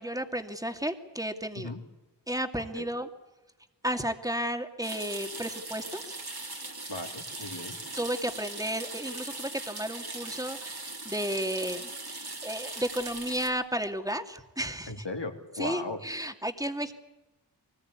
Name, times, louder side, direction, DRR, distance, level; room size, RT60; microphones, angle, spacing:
voice 1, 0.0-1.7 2.3-3.1 3.8-6.2 8.0-15.1 15.6-16.9, equal, 10° right, 6 dB, 2.4 m, -33 dB
sound 1, 4.8-13.5, right 2 dB, 60° right, 3.6 m, -40 dB
voice 2, 6.9-7.8 14.9-16.0, left 2 dB, 75° left, 3 dB, 3.3 m, -37 dB
24.0 x 19.5 x 9.7 m, 1.0 s
wide cardioid pair, 40°, 43 cm